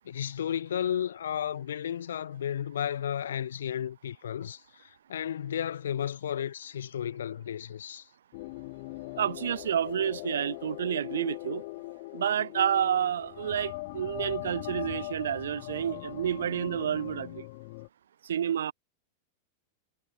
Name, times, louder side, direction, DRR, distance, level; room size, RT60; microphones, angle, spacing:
voice 1, 0.0-4.6 5.1-8.0, left 9 dB, 65° left, 1.6 m, -33 dB
sound 1, 8.3-17.9, left 23 dB, 50° left, 5.4 m, -40 dB
voice 2, 9.2-11.6 12.1-17.5 18.2-18.7, right 9 dB, 65° right, 0.7 m, -29 dB
figure-of-eight pair, 90°, 0 cm